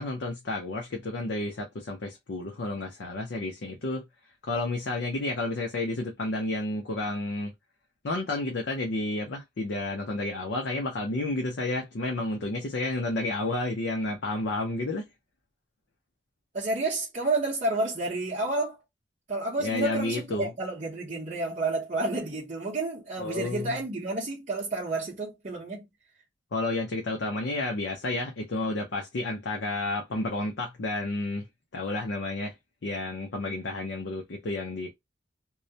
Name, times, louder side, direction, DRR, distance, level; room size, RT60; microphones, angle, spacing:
voice 1, 0.0-4.1 4.4-7.5 8.0-15.1 19.6-20.5 23.2-23.8 26.5-31.5 31.7-32.5 32.8-34.9, left 2 dB, 70° left, 0.6 m, -31 dB
voice 2, 16.5-18.8 19.3-25.8, right 2 dB, 40° right, 0.7 m, -30 dB
2.3 x 2.1 x 2.6 m
head